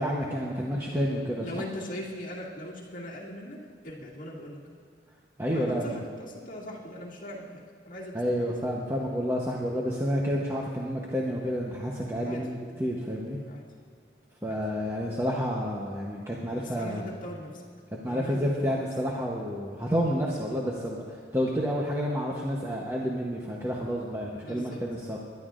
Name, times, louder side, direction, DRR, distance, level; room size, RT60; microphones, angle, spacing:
voice 1, 0.0-1.6 5.4-5.9 8.1-13.4 14.4-17.1 18.0-25.2, equal, 15° right, -3 dB, 0.9 m, -30 dB
voice 2, 1.4-4.6 5.5-8.5 12.2-12.4 13.5-13.7 14.5-14.6 16.5-17.6 18.1-18.8 24.4-24.8, equal, 45° left, -6 dB, 2.3 m, -40 dB
21.5 x 11.5 x 2.5 m, 2.2 s
head